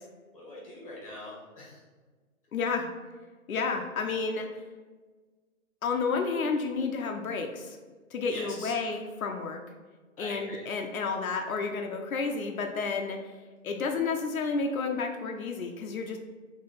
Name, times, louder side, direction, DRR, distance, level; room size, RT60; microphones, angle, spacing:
voice 1, 0.3-1.8 8.3-8.7 10.2-10.7, left 1 dB, 25° left, -4 dB, 1.1 m, -43 dB
voice 2, 2.5-2.9 3.5-4.6 5.8-7.8 8.1-9.6 10.2-13.4 13.6-16.2, left 4 dB, 80° left, 3 dB, 0.7 m, -31 dB
3.7 x 2.9 x 4.0 m, 1.4 s
hypercardioid pair, 175°, 42 cm